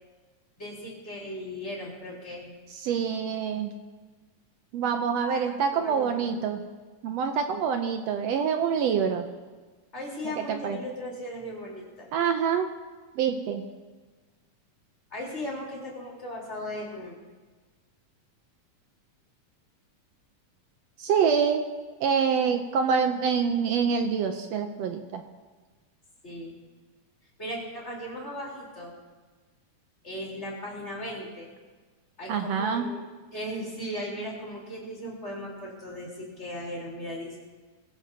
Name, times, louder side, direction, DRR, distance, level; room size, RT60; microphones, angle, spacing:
voice 1, 0.6-2.5 5.2-6.3 9.9-12.1 15.1-17.1 26.2-26.5 27.4-28.9 30.0-31.5 32.2-33.0 33.3-37.4, equal, 20° left, -4 dB, 4.0 m, -37 dB
voice 2, 2.7-3.7 4.7-6.6 7.0-9.3 10.4-10.8 12.1-12.7 13.2-13.6 21.0-21.6 22.0-25.2 32.3-32.9, right 6 dB, 75° right, 6 dB, 1.7 m, -26 dB
22.5 x 16.0 x 2.9 m, 1.4 s
omnidirectional pair, 3.5 m